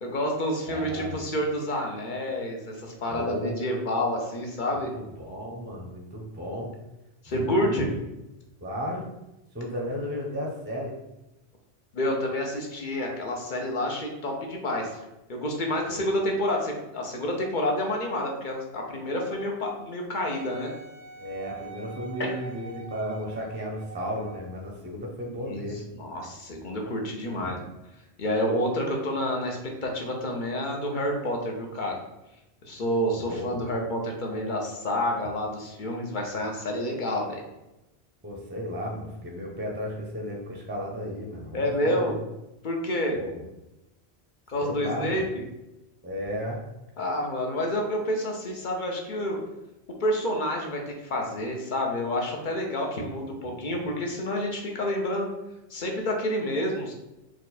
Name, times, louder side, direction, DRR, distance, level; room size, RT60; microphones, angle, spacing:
voice 1, 0.0-4.9 7.2-7.9 11.9-15.0 15.3-20.7 22.2-22.3 25.4-25.7 25.9-27.7 28.2-32.0 32.6-37.4 41.5-42.2 42.6-43.2 44.5-45.4 47.0-49.4 50.0-55.3 55.7-56.9, left 1 dB, 50° left, 1 dB, 0.9 m, -29 dB
voice 2, 0.7-1.2 3.1-3.9 4.9-6.7 7.3-7.9 8.6-9.1 9.5-10.9 15.9-16.1 21.2-25.8 27.4-27.6 33.2-33.6 38.2-42.1 43.1-43.4 44.6-45.2 46.0-46.6 53.3-53.8, equal, 10° right, -1 dB, 0.7 m, -34 dB
Wind instrument woodwind instrument, 20.3-24.6 25.2-25.3, right 5 dB, 50° right, 0.6 m, -44 dB
4.6 x 2.5 x 4.1 m, 0.95 s
omnidirectional pair, 1.1 m